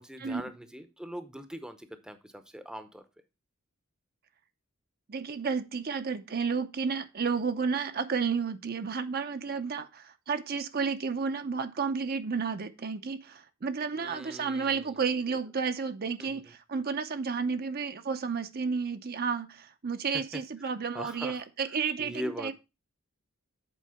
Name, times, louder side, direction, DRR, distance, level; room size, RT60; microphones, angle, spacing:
voice 1, 0.0-3.0 14.0-15.0 16.2-16.4 20.1-20.4 20.9-22.5, equal, 5° right, 9 dB, 0.7 m, -41 dB
voice 2, 5.1-22.5, right 5 dB, 45° right, 9 dB, 0.6 m, -32 dB
7.6 x 4.4 x 5.6 m, 0.27 s
head